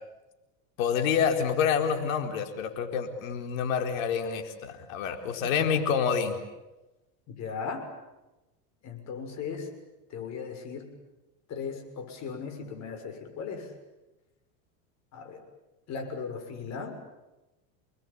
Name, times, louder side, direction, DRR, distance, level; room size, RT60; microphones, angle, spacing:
voice 1, 0.8-6.4, left 7 dB, 75° left, 5 dB, 4.5 m, -28 dB
voice 2, 7.3-7.9 8.8-9.7 10.1-10.9 11.5-13.7 15.1-15.4 15.9-16.9, left 5 dB, 40° left, 5 dB, 6.6 m, -37 dB
30.0 x 20.5 x 8.8 m, 1.0 s
supercardioid pair, 135°, 40 cm